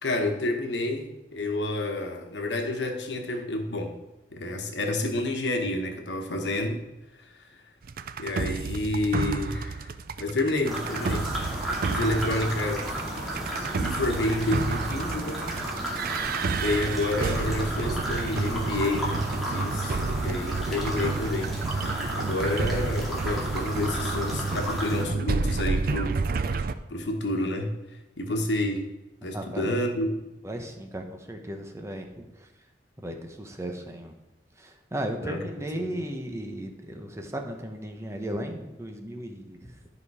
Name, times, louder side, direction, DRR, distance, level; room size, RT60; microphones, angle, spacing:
voice 1, 0.0-3.9 4.3-6.8 7.2-7.3 8.2-9.9 10.2-11.3 11.8-12.9 13.8-15.5 16.6-21.6 22.1-26.1 26.4-26.6 26.9-27.7 28.2-28.9 29.2-30.2 35.2-35.4 35.7-35.9, left 2 dB, 85° left, 4 dB, 1.2 m, -29 dB
sound 1, 7.8-26.7, right 4 dB, 55° right, 0.4 m, -30 dB
sound 2, 10.6-25.0, equal, ahead, 2.4 m, -33 dB
voice 2, 30.4-32.5 33.0-34.1 34.6-39.7, right 1 dB, 15° right, 4 dB, 1.0 m, -36 dB
11.5 x 5.3 x 4.8 m, 0.98 s
head